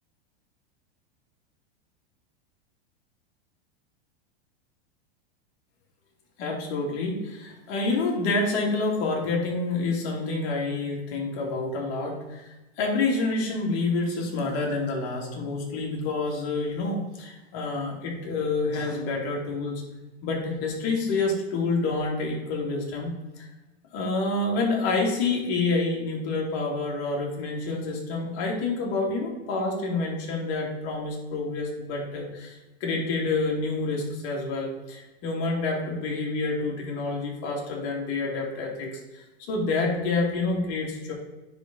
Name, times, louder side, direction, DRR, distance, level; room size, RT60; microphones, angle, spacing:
voice 1, 6.4-19.8 20.2-23.5 23.9-41.1, left 3 dB, 50° left, -1 dB, 2.4 m, -28 dB
9.7 x 4.0 x 3.8 m, 1.1 s
supercardioid pair, 125°, 32 cm